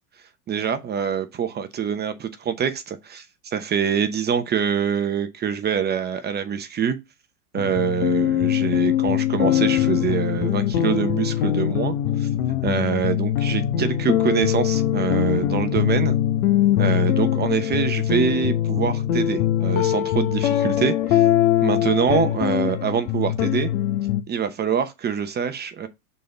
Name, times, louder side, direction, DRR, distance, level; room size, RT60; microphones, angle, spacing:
voice 1, 0.5-7.0 7.5-12.3 12.6-16.2 16.8-21.2 21.6-23.7 24.3-25.9, right 8 dB, 20° right, 0.8 m, -25 dB
sound 1, 7.6-24.2, left 12 dB, 65° left, 1.0 m, -22 dB
6.7 x 4.0 x 3.8 m
hypercardioid pair, 100°, 45 cm